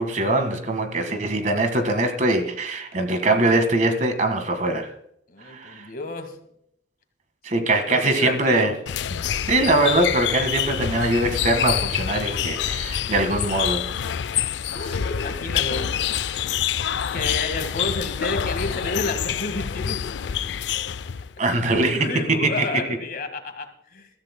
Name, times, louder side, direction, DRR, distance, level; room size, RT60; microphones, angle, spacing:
voice 1, 0.0-4.9 5.4-5.9 7.4-8.7 9.5-13.8 21.4-22.4, right 2 dB, 45° right, 7 dB, 1.7 m, -22 dB
voice 2, 5.3-6.4 7.9-8.8 9.1-9.2 14.7-16.5 17.1-20.0 21.9-24.1, left 3 dB, 55° left, 7 dB, 1.7 m, -31 dB
sound 1, 8.9-21.3, left 9 dB, 75° left, 0.4 m, -27 dB
22.5 x 13.5 x 2.2 m, 0.71 s
head